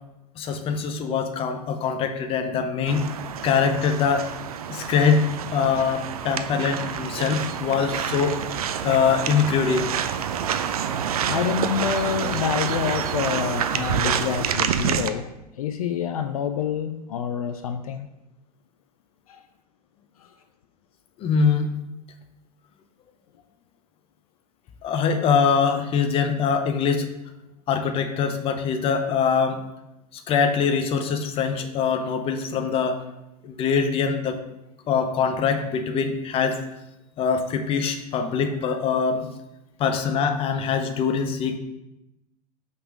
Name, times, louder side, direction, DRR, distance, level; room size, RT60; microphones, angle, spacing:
voice 1, 0.4-3.0 3.4-4.3 4.7-5.2 5.5-8.4 8.8-9.9 21.2-21.7 24.8-27.1 27.7-29.6 30.3-33.0 33.4-34.4 34.9-36.6 37.2-39.3 39.8-41.6, left 6 dB, 30° left, 7 dB, 0.7 m, -23 dB
sound 1, 2.9-15.1, right 8 dB, 65° right, 0.5 m, -28 dB
voice 2, 11.3-15.3 15.6-18.1 19.3-19.4, left 8 dB, 60° left, 9 dB, 0.4 m, -27 dB
5.4 x 4.0 x 5.0 m, 0.92 s
figure-of-eight pair, 90°, 20 cm